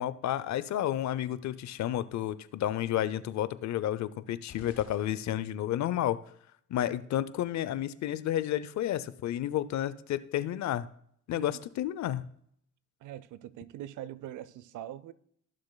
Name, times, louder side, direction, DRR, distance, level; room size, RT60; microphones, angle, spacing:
voice 1, 0.0-6.2 6.7-10.9 11.3-12.3, left 12 dB, 65° left, 0.6 m, -31 dB
sound 1, 4.5-5.8, left 4 dB, 90° left, 4.1 m, -53 dB
voice 2, 13.0-15.1, right 12 dB, 80° right, 0.6 m, -43 dB
15.5 x 6.4 x 2.3 m
cardioid pair, 90°, 30 cm